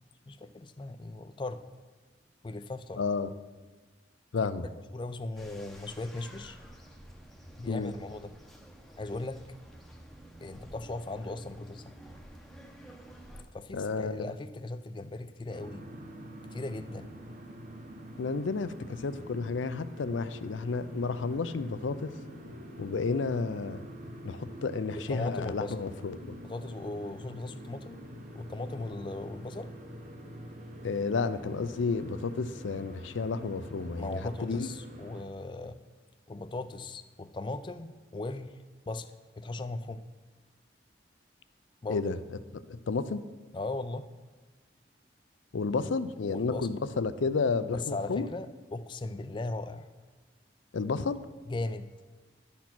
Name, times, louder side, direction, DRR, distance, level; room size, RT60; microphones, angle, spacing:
voice 1, 0.3-1.6 2.4-3.0 4.9-6.6 7.6-8.3 9.0-9.4 10.4-11.9 13.5-15.8 16.5-17.1 25.1-25.7 26.4-28.0 28.3-29.7 34.0-35.8 36.3-40.0 41.8-42.1 43.5-44.1 46.3-46.7 47.7-49.9 51.5-51.9, left 2 dB, 25° left, 11 dB, 0.3 m, -38 dB
voice 2, 3.0-3.3 4.3-4.7 7.7-7.9 13.7-14.3 18.2-22.1 22.8-23.8 24.2-26.3 30.8-34.7 41.9-42.2 42.7-43.2 45.5-48.3 50.7-51.2, left 4 dB, 85° left, 13 dB, 0.5 m, -31 dB
sound 1, 5.4-13.4, right 1 dB, ahead, 0.7 m, -50 dB
sound 2, 15.5-35.2, equal, 45° right, 1.1 m, -46 dB
11.5 x 4.3 x 6.0 m, 1.3 s
head